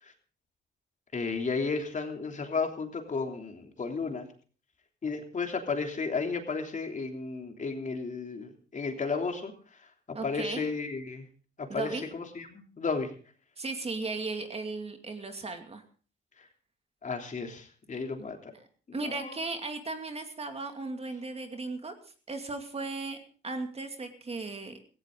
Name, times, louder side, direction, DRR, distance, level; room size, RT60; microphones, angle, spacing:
voice 1, 1.1-4.3 5.0-9.5 10.2-11.3 11.6-13.1 17.0-18.5 18.9-19.4, left 4 dB, 40° left, 4 dB, 3.3 m, -33 dB
voice 2, 10.1-10.6 11.7-12.1 13.6-15.8 18.9-21.9 22.3-23.2 23.4-24.8, right 3 dB, 30° right, 6 dB, 2.5 m, -36 dB
17.0 x 16.0 x 3.9 m, 0.39 s
cardioid pair, 90°, 20 cm